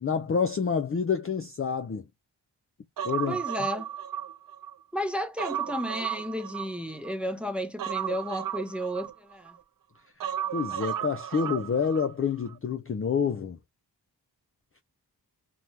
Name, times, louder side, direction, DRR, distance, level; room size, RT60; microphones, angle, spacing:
voice 1, 0.0-2.1 3.0-3.4 10.5-13.6, left 6 dB, 30° left, 0.5 m, -28 dB
Human voice, 3.0-4.8 5.1-7.1 7.8-9.6 10.2-12.1 12.4-12.5, right 10 dB, 50° right, 0.5 m, -34 dB
voice 2, 3.3-3.9 4.9-9.6, equal, 5° right, 0.8 m, -33 dB
2.7 x 2.2 x 3.1 m
cardioid pair, 45°, 43 cm